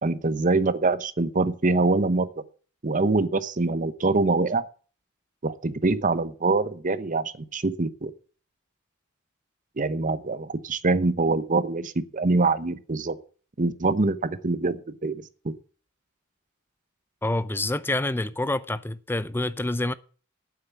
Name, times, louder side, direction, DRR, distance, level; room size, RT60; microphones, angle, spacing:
voice 1, 0.0-2.3 2.8-4.6 5.4-8.1 9.8-13.2 13.6-15.6, right 3 dB, 35° right, 0.9 m, -24 dB
voice 2, 17.2-19.9, left 2 dB, 10° left, 0.6 m, -27 dB
9.1 x 7.6 x 9.0 m
head